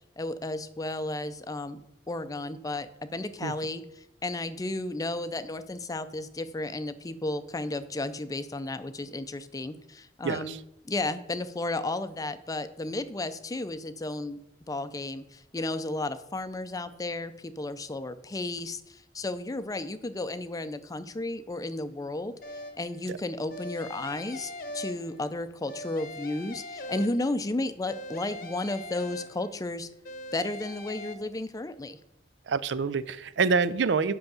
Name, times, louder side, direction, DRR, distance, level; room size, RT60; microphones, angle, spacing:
voice 1, 0.2-1.8 2.1-10.5 10.8-14.4 14.7-29.9 30.3-32.0, left 2 dB, 20° left, 12 dB, 0.5 m, -33 dB
voice 2, 10.2-10.6 23.1-23.2 32.5-34.1, right 5 dB, 70° right, 15 dB, 0.4 m, -26 dB
sound 1, 22.4-23.0 23.5-25.4 25.7-27.5 27.9-29.7 30.0-31.1, left 1 dB, 55° left, 0.9 m, -41 dB
8.0 x 5.7 x 6.9 m, 0.81 s
head